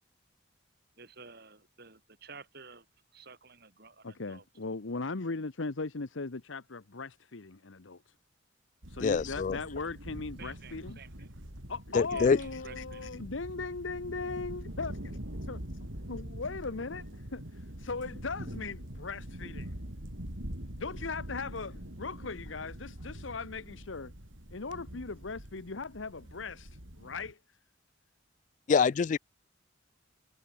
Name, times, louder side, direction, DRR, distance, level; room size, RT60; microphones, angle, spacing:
voice 1, 1.0-2.8 3.1-4.4 10.4-11.3 12.1-13.1, right 4 dB, 55° right, 5.0 m, -51 dB
voice 2, 4.0-8.0 8.9-11.0 11.7-15.2 15.5-15.6 16.1-17.4 17.8-19.7 20.8-24.1 24.5-27.4, left 4 dB, 90° left, 1.1 m, -38 dB
sound 1, 8.8-27.3, equal, 90° right, 5.5 m, -44 dB
voice 3, 9.0-9.6 11.9-12.4 28.7-29.2, left 5 dB, 40° left, 0.3 m, -25 dB
head